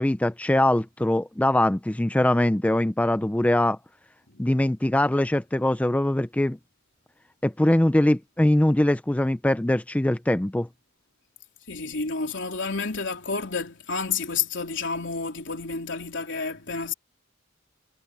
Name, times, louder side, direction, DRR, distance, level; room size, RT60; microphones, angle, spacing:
voice 1, 0.0-3.8 4.4-6.6 7.4-10.7, left 1 dB, 5° left, 0.4 m, -22 dB
voice 2, 11.7-16.9, left 5 dB, 65° left, 3.7 m, -30 dB
head